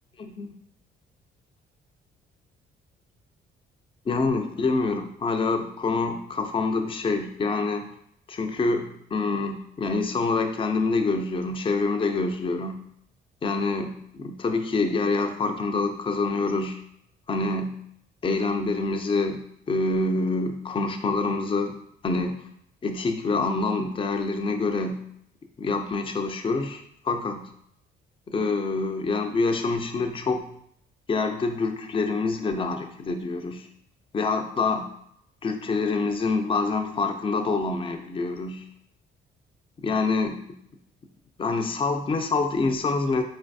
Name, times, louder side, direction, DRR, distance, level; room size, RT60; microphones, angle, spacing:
voice 1, 0.2-0.5 4.1-7.9 8.3-12.8 13.4-16.8 17.3-17.8 18.2-21.7 22.0-22.4 22.8-25.0 25.6-27.5 28.3-30.5 31.1-33.7 34.1-34.9 35.4-38.7 39.8-40.5 41.4-43.2, left 3 dB, 25° left, 5 dB, 0.4 m, -26 dB
3.8 x 3.3 x 2.6 m, 0.72 s
cardioid pair, 90°, 20 cm